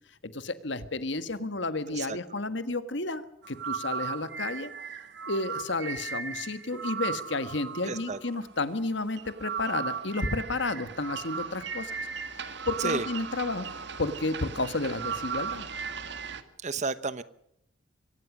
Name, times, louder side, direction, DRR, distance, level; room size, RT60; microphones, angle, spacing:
voice 1, 0.2-4.7 5.3-11.9 12.7-13.7 14.0-15.7, left 2 dB, 60° left, 12 dB, 1.6 m, -32 dB
sound 1, 3.4-16.4, right 6 dB, 55° right, 1.9 m, -36 dB
voice 2, 7.9-8.2 12.8-13.1 16.6-17.2, right 3 dB, 35° right, 15 dB, 1.0 m, -31 dB
24.0 x 18.5 x 6.2 m, 0.76 s
head